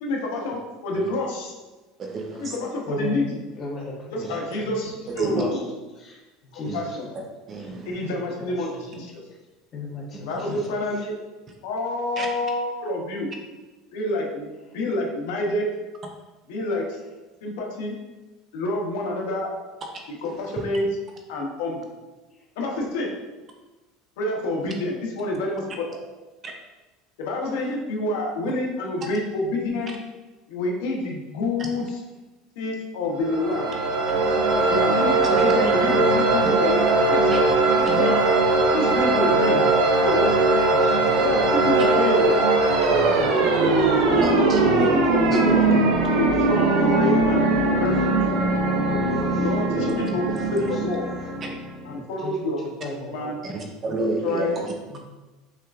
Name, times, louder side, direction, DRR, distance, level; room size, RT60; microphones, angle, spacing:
voice 1, 0.0-1.5 2.4-3.4 4.1-5.7 6.5-7.1 7.9-9.1 10.2-11.1 11.6-13.3 13.9-14.5 14.7-15.7 16.5-17.0 17.4-18.0 18.5-19.5 20.2-20.9 21.3-21.9 22.6-23.1 24.2-25.6 25.9-26.0 27.2-29.9 30.5-31.9 32.6-33.7 34.5-37.4 37.7-38.2 38.7-39.6 40.0-40.4 41.2-42.4 44.1-45.4 46.1-47.5 47.7-48.1 49.4-51.1 51.8-52.6 53.1-53.4 54.2-54.7, left 2 dB, 85° left, -1 dB, 0.8 m, -28 dB
voice 2, 2.0-2.6 4.2-4.4 5.1-5.4 6.7-6.8 7.5-8.1 10.3-10.6 12.2-12.3 20.3-20.6 24.7-24.8 26.4-26.5 31.6-31.9 35.2-35.5 36.4-36.6 37.3-37.6 44.1-44.9 45.3-45.6 49.7-49.9 50.3-50.4 53.4-54.7, right 2 dB, 25° right, 2 dB, 0.5 m, -30 dB
voice 3, 2.9-3.2 3.5-4.8 5.2-5.6 6.0-6.2 6.5-6.8 7.7-9.1 9.7-10.7 11.0-11.1 39.5-39.7 40.7-41.8 43.2-43.3 43.8-44.0 44.9-45.6 45.8-47.3 48.7-50.8 51.2-51.5 51.9-52.3 52.8-53.3 54.9-55.0, left 2 dB, 30° left, -3 dB, 1.0 m, -36 dB
sound 1, 33.2-51.8, right 2 dB, 75° right, 0.7 m, -20 dB
5.6 x 2.4 x 2.4 m, 1.2 s
cardioid pair, 160°, 0 cm